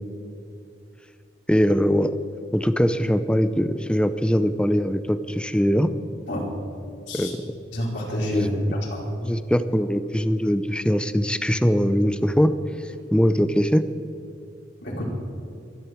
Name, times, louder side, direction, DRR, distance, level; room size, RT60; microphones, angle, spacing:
voice 1, 1.5-2.1 2.5-5.9 7.1-7.4 8.3-8.5 9.2-12.5 13.1-13.8, equal, 5° left, 12 dB, 0.6 m, -21 dB
voice 2, 7.7-8.5 8.9-9.1 14.8-15.0, left 1 dB, 70° left, -4 dB, 4.9 m, -28 dB
24.0 x 11.5 x 4.6 m, 2.6 s
head